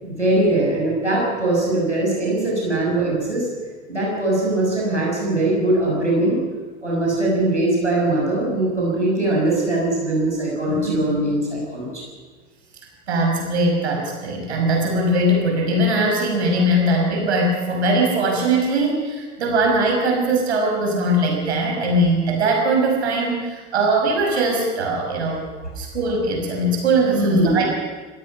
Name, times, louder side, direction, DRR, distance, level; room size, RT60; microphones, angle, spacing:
voice 1, 0.0-3.5 3.9-6.4 6.8-12.0 27.1-27.7, right 2 dB, 90° right, -4 dB, 6.3 m, -21 dB
voice 2, 13.1-25.4 25.8-27.7, right 1 dB, 70° right, 1 dB, 6.0 m, -20 dB
26.0 x 17.5 x 5.8 m, 1.4 s
figure-of-eight pair, 75°, 34 cm